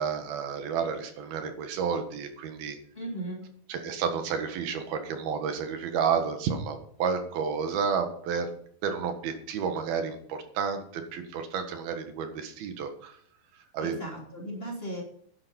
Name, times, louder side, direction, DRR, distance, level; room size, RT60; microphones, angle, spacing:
voice 1, 0.0-2.8 3.7-8.5 8.8-13.2 13.7-14.0, right 6 dB, 90° right, 6 dB, 3.5 m, -31 dB
voice 2, 2.9-3.5 13.8-15.0, right 1 dB, 15° left, -2 dB, 3.0 m, -36 dB
11.0 x 10.5 x 5.4 m, 0.63 s
omnidirectional pair, 4.2 m